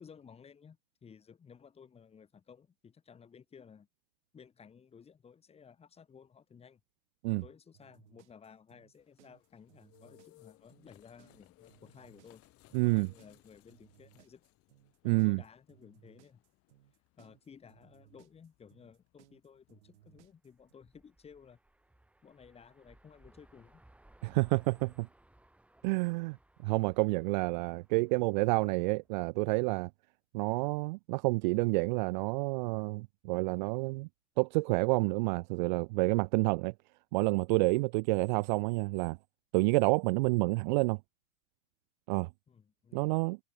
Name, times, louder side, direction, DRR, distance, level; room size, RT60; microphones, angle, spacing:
voice 1, 0.0-3.9 4.3-6.8 7.3-12.4 12.8-14.4 15.0-16.4 17.2-21.6 22.2-23.8 42.5-43.2, left 6 dB, 15° left, 2.8 m, -56 dB
sound 1, 7.7-20.7, right 15 dB, 65° right, 6.8 m, -64 dB
sound 2, 9.0-20.4, left 19 dB, 40° left, 7.1 m, -66 dB
voice 2, 12.7-13.1 15.0-15.4 24.2-25.1 25.8-26.4 26.6-29.9 30.3-34.1 34.4-36.7 37.1-39.2 39.5-41.0 42.1-42.3 42.9-43.4, right 26 dB, 40° right, 0.4 m, -29 dB
sound 3, 20.1-29.3, right 1 dB, 5° right, 5.4 m, -64 dB
hypercardioid pair, 135°, 38 cm